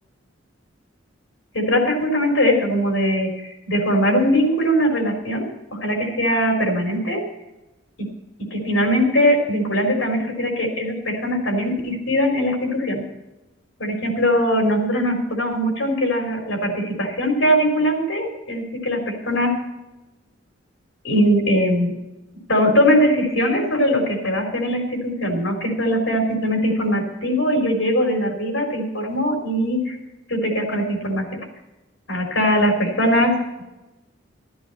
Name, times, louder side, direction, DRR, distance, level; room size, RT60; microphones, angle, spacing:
voice 1, 1.5-7.2 8.5-13.0 13.8-19.5 21.0-21.9 22.5-30.0 30.3-31.4 32.1-33.4, equal, 85° left, 2 dB, 3.8 m, -21 dB
13.5 x 13.0 x 4.2 m, 1.0 s
head